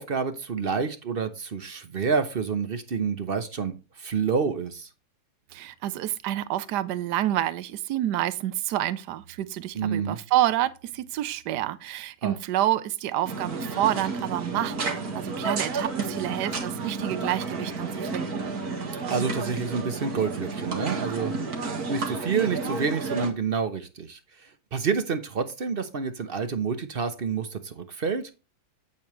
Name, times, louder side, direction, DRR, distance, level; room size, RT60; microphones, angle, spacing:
voice 1, 0.0-4.9 9.7-10.2 12.2-12.4 19.1-21.3 21.9-24.2 24.7-28.3, right 5 dB, 45° right, 0.8 m, -28 dB
voice 2, 5.5-18.5, right 13 dB, 80° right, 1.2 m, -28 dB
sound 1, 13.2-23.3, right 4 dB, 60° right, 2.2 m, -31 dB
8.8 x 8.5 x 3.1 m
omnidirectional pair, 1.8 m